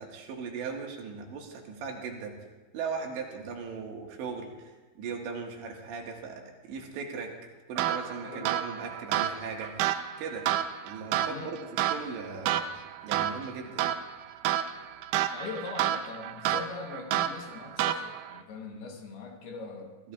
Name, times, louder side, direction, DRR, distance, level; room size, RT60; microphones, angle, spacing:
voice 1, 0.0-2.3 2.7-7.3 7.7-9.9 10.2-10.5 10.8-12.6 13.0-13.8 20.0-20.1, right 5 dB, 70° right, 1 dB, 3.7 m, -38 dB
sound 1, 7.8-18.4, right 11 dB, 90° right, 2.4 m, -31 dB
voice 2, 8.2-8.5 11.3-11.5 15.3-20.0, left 4 dB, 70° left, 2 dB, 2.8 m, -41 dB
24.5 x 15.0 x 2.4 m, 1.2 s
omnidirectional pair, 5.6 m